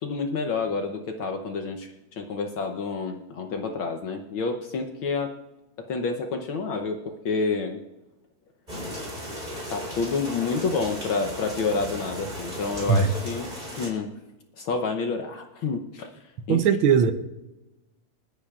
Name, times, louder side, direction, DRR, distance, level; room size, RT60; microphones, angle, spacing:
voice 1, 0.0-5.3 5.9-7.8 9.7-14.1 14.6-16.1 16.5-16.6, left 4 dB, 70° left, 4 dB, 1.2 m, -29 dB
sound 1, 8.7-13.9, equal, 15° right, 3.9 m, -36 dB
voice 2, 16.5-17.1, right 6 dB, 80° right, 8 dB, 1.1 m, -19 dB
29.5 x 10.0 x 2.4 m, 1.0 s
omnidirectional pair, 3.3 m